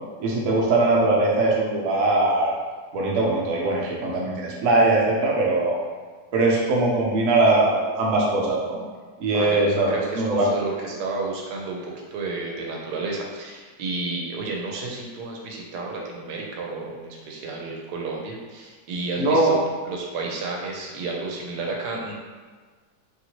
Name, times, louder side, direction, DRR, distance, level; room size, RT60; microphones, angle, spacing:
voice 1, 0.2-2.5 2.9-5.8 6.3-8.8 9.2-10.5 19.2-19.5, right 2 dB, 60° right, -3 dB, 0.9 m, -21 dB
voice 2, 9.9-19.6 19.9-22.1, right 3 dB, 90° right, -1 dB, 1.2 m, -31 dB
3.0 x 2.7 x 2.8 m, 1.5 s
omnidirectional pair, 1.7 m